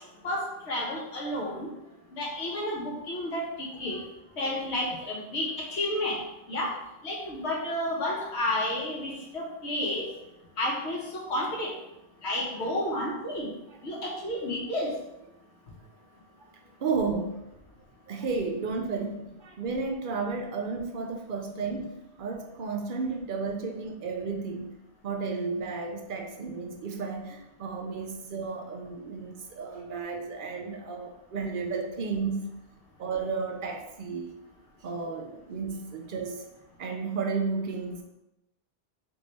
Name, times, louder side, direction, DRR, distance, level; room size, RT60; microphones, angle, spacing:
voice 1, 0.2-1.7 2.1-3.5 3.8-4.0 4.4-6.2 6.5-6.7 7.0-10.0 10.6-11.7 12.2-13.5 13.8-14.9, left 1 dB, 80° left, -3 dB, 1.3 m, -31 dB
voice 2, 16.8-17.4 18.1-24.8 25.0-32.4 33.0-34.4 34.8-36.4 36.8-38.0, right 4 dB, 55° right, 4 dB, 0.7 m, -33 dB
3.4 x 3.2 x 4.0 m, 0.90 s
omnidirectional pair, 1.1 m